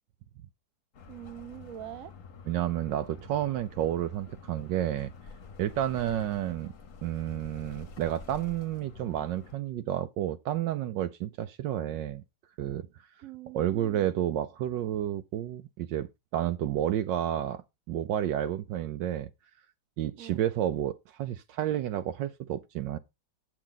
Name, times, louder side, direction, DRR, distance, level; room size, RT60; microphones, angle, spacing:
sound 1, 0.9-9.6, left 5 dB, 50° left, 1.3 m, -48 dB
voice 1, 1.1-2.1 13.2-14.1 20.2-20.4, right 13 dB, 55° right, 1.1 m, -44 dB
voice 2, 2.5-5.1 5.6-6.7 7.0-12.2 12.6-12.8 13.5-17.6 17.9-19.3 20.0-23.0, right 11 dB, 75° right, 1.3 m, -30 dB
7.7 x 7.3 x 3.9 m
omnidirectional pair, 2.1 m